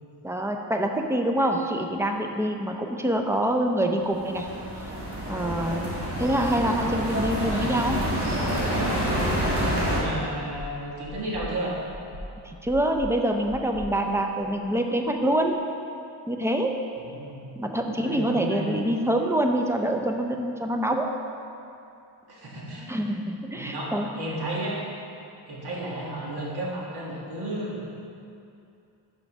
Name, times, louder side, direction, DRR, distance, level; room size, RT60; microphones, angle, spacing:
voice 1, 0.2-4.5 5.3-5.9 6.2-8.0 8.7-8.8 12.4-15.5 16.3-16.7 17.6-21.1 22.9-24.1, right 1 dB, 5° right, 3 dB, 0.5 m, -25 dB
sound 1, 4.0-10.0, equal, 30° right, 1.6 m, -27 dB
sound 2, 7.4-7.6 7.9-8.3 8.7-9.1 9.5-9.9 10.3-10.7 11.0-11.5 11.9-12.3 12.6-13.1 13.4-14.6, equal, 90° right, 1.5 m, -40 dB
voice 2, 9.9-11.8 17.0-17.6 17.8-18.8 22.3-22.9 23.5-24.8 25.5-27.9, right 1 dB, 65° right, -4 dB, 1.8 m, -33 dB
5.6 x 5.1 x 6.2 m, 2.7 s
wide cardioid pair, 120°, 42 cm